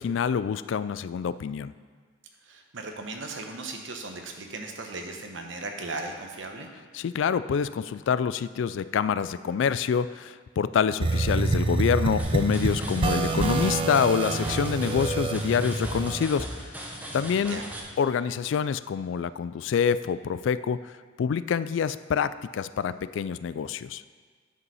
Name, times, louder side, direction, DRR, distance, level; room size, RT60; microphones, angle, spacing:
voice 1, 0.0-1.7 6.9-16.8 17.1-17.6 18.0-20.9 21.2-24.0, left 7 dB, 70° left, 15 dB, 0.3 m, -26 dB
voice 2, 2.4-6.7 13.0-13.2 17.5-17.6, right 3 dB, 70° right, 3 dB, 1.0 m, -37 dB
sound 1, 11.0-16.3, right 3 dB, 25° right, 0.5 m, -27 dB
sound 2, 12.2-17.8, equal, 10° right, 0.9 m, -37 dB
9.5 x 5.3 x 5.6 m, 1.5 s
head